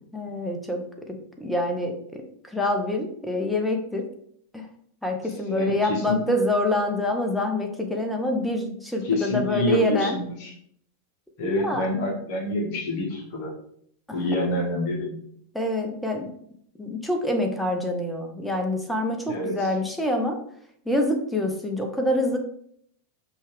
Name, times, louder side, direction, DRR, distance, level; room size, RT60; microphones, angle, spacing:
voice 1, 0.1-0.8 1.1-4.0 4.5-4.7 5.0-10.2 11.4-11.8 14.1-14.2 15.5-16.3 16.8-20.4 20.9-22.4, left 1 dB, ahead, 3 dB, 0.7 m, -26 dB
voice 2, 5.5-6.2 9.0-10.5 11.4-13.5 14.1-15.2 19.3-19.7, left 1 dB, 45° left, -1 dB, 1.0 m, -27 dB
5.3 x 2.4 x 3.2 m, 0.67 s
figure-of-eight pair, 90°, 0 cm